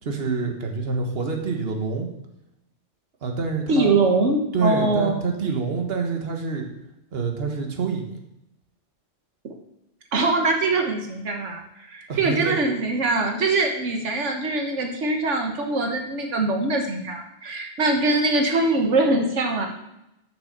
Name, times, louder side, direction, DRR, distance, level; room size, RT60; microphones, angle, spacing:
voice 1, 0.0-2.1 3.2-3.9 4.5-6.7 7.1-8.2 12.1-12.6, right 4 dB, 60° right, 2 dB, 1.5 m, -27 dB
voice 2, 3.7-5.2 10.1-19.7, right 2 dB, 90° right, 3 dB, 1.5 m, -23 dB
7.0 x 6.5 x 6.6 m, 0.85 s
omnidirectional pair, 1.2 m